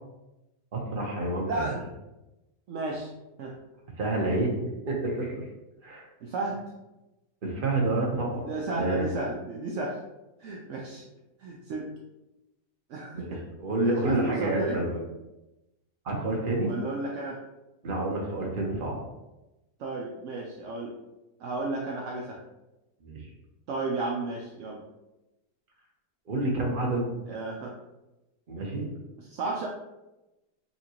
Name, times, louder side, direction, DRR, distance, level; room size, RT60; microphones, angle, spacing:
voice 1, 0.7-1.6 4.0-4.5 4.9-5.4 5.8-6.0 7.4-8.4 8.8-9.1 13.1-15.0 16.0-16.7 17.8-19.0 23.0-23.2 26.3-27.1 28.5-28.9, right 2 dB, 40° right, -2 dB, 0.9 m, -28 dB
voice 2, 1.4-1.9 2.7-3.1 3.4-3.6 6.2-6.6 8.3-10.0 10.4-11.0 11.4-11.9 12.9-13.4 13.8-14.8 16.7-17.4 19.8-20.9 21.4-22.4 23.7-24.8 27.3-27.7 29.2-29.7, right 3 dB, 70° right, -2 dB, 0.7 m, -33 dB
5.5 x 2.5 x 2.9 m, 0.98 s
omnidirectional pair, 1.8 m